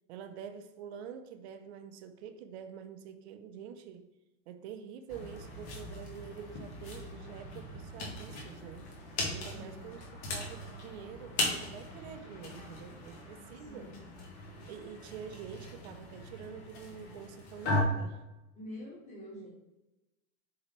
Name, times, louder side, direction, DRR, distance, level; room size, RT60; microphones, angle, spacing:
voice 1, 0.1-4.1 4.5-8.9 9.3-10.0 10.3-13.9 14.7-18.2, right 8 dB, 50° right, 0.7 m, -46 dB
sound 1, 5.1-17.8, left 2 dB, 45° left, 1.7 m, -39 dB
voice 2, 9.5-9.9 13.6-14.0 18.6-19.5, equal, 15° left, 1.9 m, -46 dB
7.4 x 4.0 x 3.1 m
supercardioid pair, 160°, 43 cm